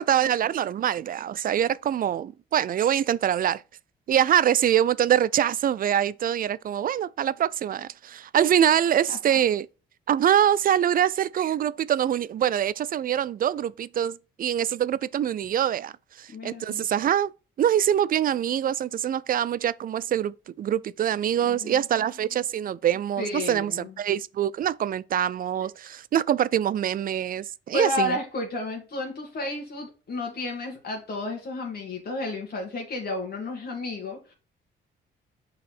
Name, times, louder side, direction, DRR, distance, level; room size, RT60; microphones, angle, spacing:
voice 1, 0.0-3.6 4.1-9.7 10.1-17.3 17.6-28.2, right 10 dB, 45° right, 0.4 m, -24 dB
voice 2, 16.3-16.8 21.4-21.8 23.2-23.9 27.7-34.3, left 2 dB, 50° left, 2.0 m, -32 dB
6.5 x 4.1 x 4.3 m
cardioid pair, 90°, 20 cm